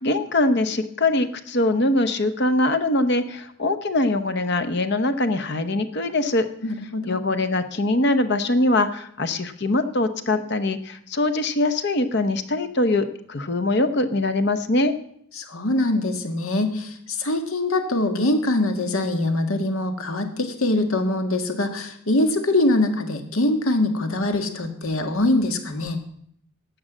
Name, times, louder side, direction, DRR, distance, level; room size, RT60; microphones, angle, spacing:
voice 1, 0.0-6.5 7.0-14.9, left 2 dB, 50° left, 10 dB, 0.9 m, -22 dB
voice 2, 6.6-7.2 15.4-26.0, left 2 dB, 75° left, 6 dB, 1.6 m, -23 dB
12.0 x 7.6 x 7.3 m, 0.69 s
head